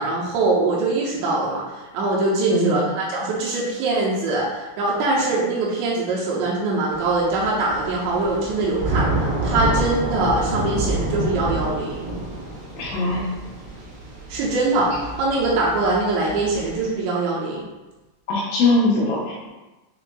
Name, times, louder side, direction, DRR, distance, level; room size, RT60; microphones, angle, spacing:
voice 1, 0.0-12.0 14.3-17.6, right 2 dB, 80° right, -5 dB, 2.7 m, -23 dB
Thunder / Rain, 6.9-16.9, right 2 dB, 60° right, 2.4 m, -28 dB
voice 2, 12.8-13.2 18.3-19.5, left 2 dB, 80° left, -5 dB, 3.1 m, -21 dB
7.0 x 2.5 x 2.2 m, 1.1 s
omnidirectional pair, 5.3 m